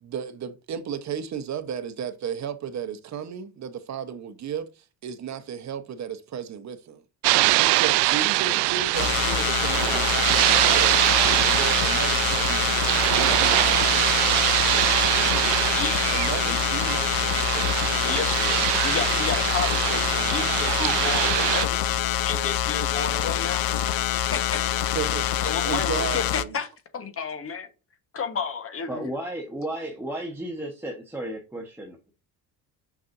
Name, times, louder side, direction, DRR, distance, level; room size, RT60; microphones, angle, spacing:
voice 1, 0.0-7.0 7.7-14.4 16.1-18.0 24.9-25.2 25.7-26.6, right 8 dB, 45° right, 1.0 m, -34 dB
sound 1, 7.2-21.7, right 19 dB, 80° right, 0.6 m, -23 dB
sound 2, 8.9-26.4, left 11 dB, 60° left, 0.7 m, -26 dB
voice 2, 15.7-16.6 18.0-21.8 22.2-23.7 24.2-24.7 25.4-27.7 28.1-29.1, left 5 dB, 35° left, 1.4 m, -32 dB
voice 3, 28.9-32.1, right 1 dB, 5° right, 1.2 m, -34 dB
6.1 x 5.9 x 2.7 m
cardioid pair, 120°, 40 cm